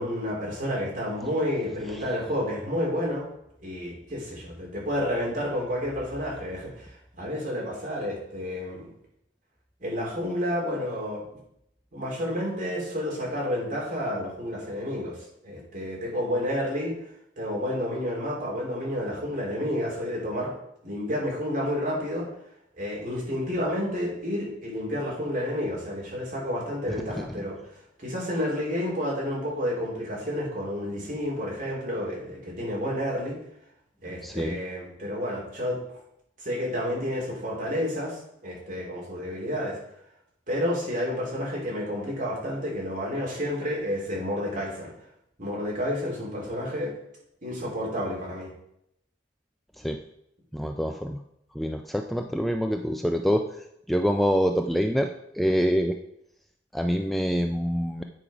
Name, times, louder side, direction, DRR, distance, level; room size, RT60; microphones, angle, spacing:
voice 1, 0.0-3.3 3.6-6.9 7.2-8.9 9.8-11.2 11.9-15.2 15.4-16.9 17.4-20.5 20.8-22.3 22.8-27.6 28.0-33.4 34.0-35.8 36.4-39.8 40.5-44.9 45.4-46.9 47.4-48.5, equal, 45° right, -4 dB, 3.1 m, -30 dB
voice 2, 34.2-34.6 49.8-50.0 50.5-51.2 51.6-53.4 53.9-55.1 55.3-56.0 56.7-58.0, equal, ahead, 4 dB, 0.3 m, -25 dB
9.0 x 4.8 x 5.0 m, 0.77 s
head